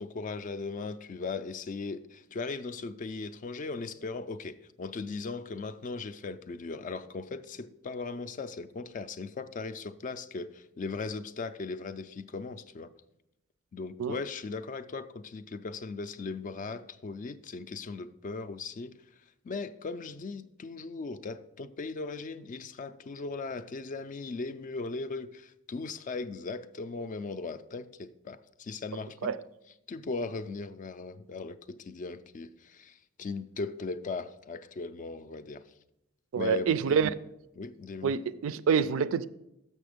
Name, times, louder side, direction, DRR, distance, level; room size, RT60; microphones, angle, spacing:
voice 1, 0.0-12.9 13.7-18.9 19.4-29.3 29.9-35.6 36.3-37.0 37.6-38.2, left 4 dB, 35° left, 0.3 m, -38 dB
voice 2, 36.3-37.1 38.0-39.3, right 6 dB, 65° right, 0.3 m, -26 dB
6.8 x 6.2 x 5.0 m
head